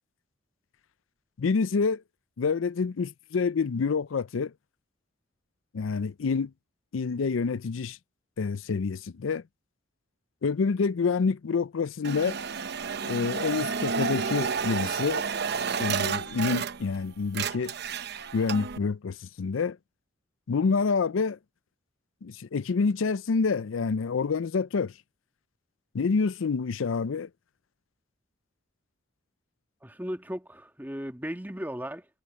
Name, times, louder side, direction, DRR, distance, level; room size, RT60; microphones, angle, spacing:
voice 1, 1.4-2.0 2.4-4.5 5.7-6.5 6.9-8.0 8.4-9.4 10.4-12.4 13.0-15.2 15.8-17.7 18.3-19.8 20.5-21.4 22.2-24.9 25.9-27.3, left 5 dB, 80° left, 0.5 m, -27 dB
sound 1, 12.0-17.0 17.3-18.8, right 6 dB, 55° right, 0.8 m, -31 dB
voice 2, 29.8-32.1, equal, 10° right, 1.6 m, -36 dB
head